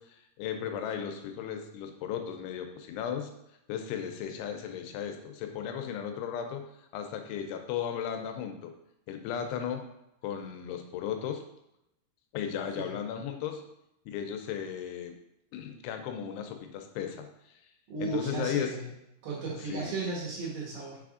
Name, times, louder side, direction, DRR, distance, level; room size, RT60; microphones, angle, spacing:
voice 1, 0.0-3.3 3.7-6.7 6.9-8.7 9.1-9.8 10.2-11.4 12.3-13.6 14.1-15.2 15.5-17.3 18.0-18.7 19.6-20.0, left 8 dB, 85° left, 5 dB, 2.6 m, -35 dB
voice 2, 17.9-18.9 19.2-21.0, right 4 dB, 70° right, -5 dB, 2.9 m, -35 dB
6.3 x 3.4 x 2.4 m, 0.83 s
omnidirectional pair, 4.7 m